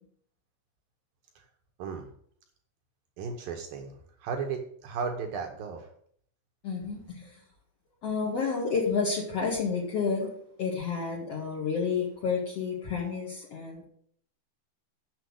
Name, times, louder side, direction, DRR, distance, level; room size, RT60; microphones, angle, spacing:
voice 1, 3.2-5.9, right 5 dB, 75° right, 3 dB, 2.2 m, -35 dB
voice 2, 6.6-7.4 8.0-10.3 10.6-13.8, left 5 dB, 60° left, -3 dB, 1.7 m, -30 dB
7.7 x 6.8 x 7.9 m, 0.63 s
omnidirectional pair, 5.4 m